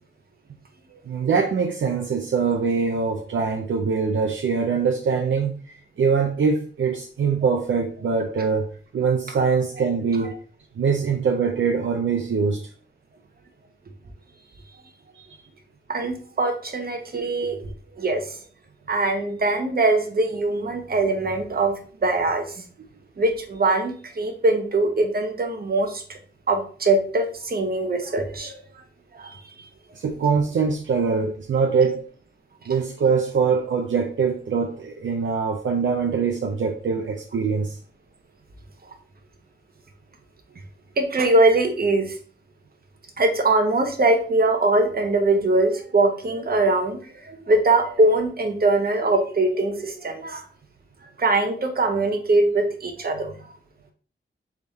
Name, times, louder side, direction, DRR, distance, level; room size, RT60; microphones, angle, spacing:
voice 1, 1.1-8.7 8.9-10.3 10.8-12.7 15.2-15.3 30.0-32.0 32.7-37.8, right 5 dB, 70° right, 0.5 m, -23 dB
voice 2, 15.9-17.6 18.0-18.4 18.9-22.6 23.2-26.2 26.5-28.6 29.1-29.4 32.6-32.7 41.0-42.2 43.2-50.4 51.2-53.3, right 2 dB, 50° right, 1.0 m, -22 dB
3.7 x 3.5 x 4.1 m
wide cardioid pair, 85°, 20 cm